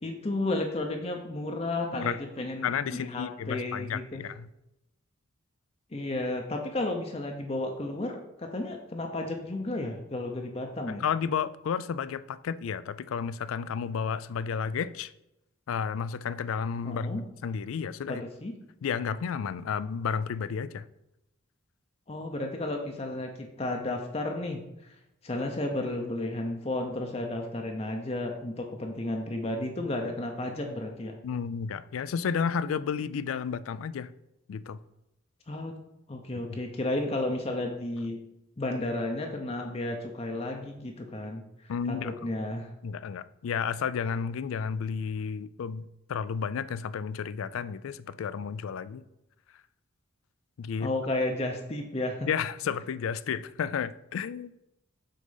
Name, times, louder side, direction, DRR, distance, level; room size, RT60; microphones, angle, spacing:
voice 1, 0.0-4.3 5.9-11.0 16.8-17.2 18.1-18.5 22.1-24.9 25.2-31.1 35.5-35.7 36.1-38.2 38.6-41.4 41.9-42.7 50.8-52.3, left 2 dB, 30° left, 0.6 m, -33 dB
voice 2, 2.6-4.5 11.0-15.1 15.7-18.2 18.8-20.8 31.2-34.1 34.5-34.8 36.4-36.5 41.7-42.1 42.8-49.0 50.6-50.9 52.3-54.6, left 6 dB, 80° left, 0.3 m, -32 dB
6.3 x 3.9 x 5.5 m
head